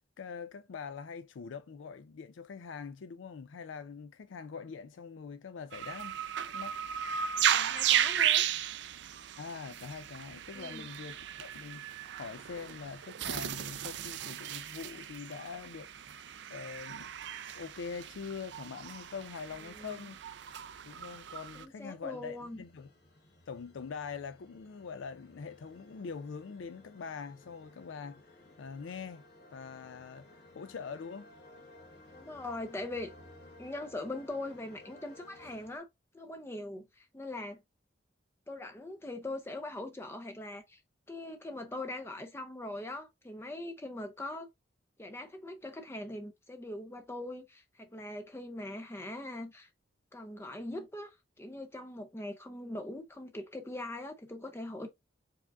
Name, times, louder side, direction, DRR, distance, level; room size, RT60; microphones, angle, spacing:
voice 1, 0.2-6.2 6.5-6.8 9.4-16.2 16.5-20.2 20.8-22.9 23.5-29.2 29.5-30.3 30.5-31.3, left 5 dB, 80° left, 0.4 m, -44 dB
sound 1, 5.7-21.7, right 9 dB, 65° right, 0.4 m, -35 dB
voice 2, 7.5-8.5 10.5-10.8 19.6-20.0 21.6-22.6 32.1-33.1 33.6-35.9 36.1-37.6 38.5-40.8 41.1-44.5 45.0-49.7 50.1-54.9, left 2 dB, 15° left, 0.4 m, -41 dB
sound 2, 21.3-35.8, left 1 dB, 60° left, 1.7 m, -57 dB
4.8 x 3.6 x 2.3 m
head